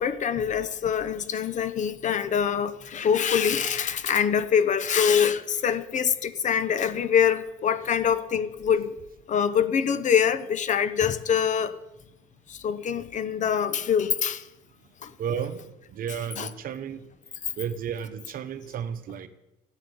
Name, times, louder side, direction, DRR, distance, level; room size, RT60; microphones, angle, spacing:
voice 1, 0.0-8.9 9.3-11.7 12.5-14.4 15.0-15.1 16.4-16.5, left 7 dB, 45° left, 13 dB, 0.9 m, -24 dB
voice 2, 15.2-17.1 17.6-19.3, right 8 dB, 60° right, 11 dB, 1.1 m, -33 dB
13.0 x 9.5 x 7.0 m, 0.93 s
cardioid pair, 110°, 17 cm